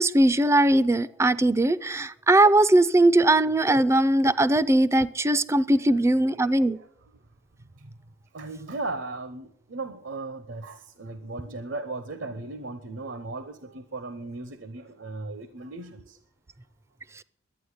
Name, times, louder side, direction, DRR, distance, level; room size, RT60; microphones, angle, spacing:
voice 1, 0.0-6.8, right 1 dB, 15° right, 17 dB, 0.4 m, -20 dB
voice 2, 5.9-6.7 7.8-7.9 8.3-16.2, right 3 dB, 70° right, 11 dB, 0.8 m, -37 dB
11.5 x 9.2 x 8.1 m, 0.74 s
head